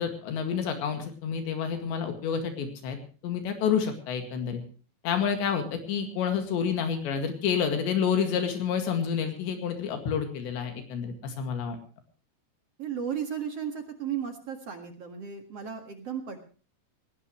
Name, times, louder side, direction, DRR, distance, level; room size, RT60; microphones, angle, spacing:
voice 1, 0.0-3.0 3.2-4.6 5.0-11.8, left 7 dB, 75° left, 6 dB, 4.3 m, -29 dB
voice 2, 12.8-16.5, right 8 dB, 50° right, 6 dB, 2.0 m, -35 dB
20.5 x 18.0 x 3.1 m, 0.38 s
omnidirectional pair, 5.1 m